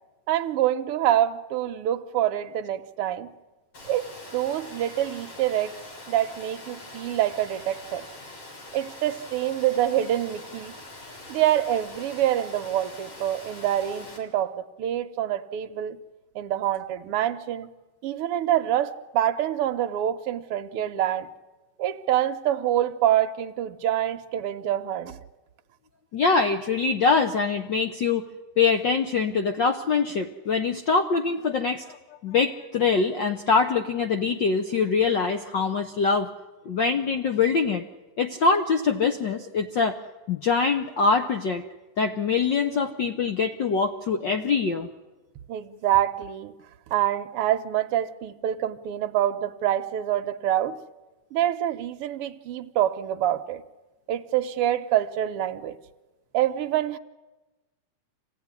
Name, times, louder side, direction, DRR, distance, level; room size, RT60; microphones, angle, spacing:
voice 1, 0.3-3.3 3.9-5.8 6.1-8.1 8.7-10.7 11.3-16.0 16.3-17.7 18.0-21.3 21.8-25.2 45.5-46.5 46.9-50.8 51.3-53.6 54.1-55.7 56.3-57.0, right 12 dB, 65° right, 8 dB, 1.5 m, -26 dB
Water, 3.7-14.2, left 2 dB, 50° left, 5.1 m, -43 dB
voice 2, 26.1-28.2 28.6-32.0 32.2-36.3 36.7-37.8 38.2-40.0 40.3-41.6 42.0-44.9, left 5 dB, 80° left, 6 dB, 1.0 m, -23 dB
26.5 x 16.5 x 9.7 m, 1.1 s
omnidirectional pair, 3.4 m